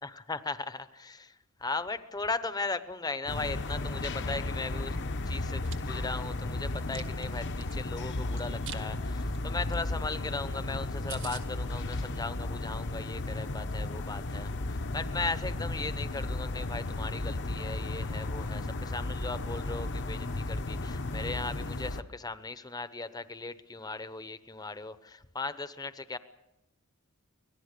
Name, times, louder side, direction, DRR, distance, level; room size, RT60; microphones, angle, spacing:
voice 1, 0.0-26.2, left 3 dB, 20° left, 12 dB, 0.9 m, -38 dB
sound 1, 3.3-22.0, left 2 dB, 55° left, 1.0 m, -34 dB
Chewing mastication, 5.4-5.8 6.3-7.8 8.3-8.8 9.2-9.4 9.7-9.8 10.1-10.2 10.5-10.6 10.8-10.9 11.1-11.4, right 10 dB, 60° right, 1.8 m, -44 dB
24.5 x 18.5 x 6.7 m, 0.96 s
head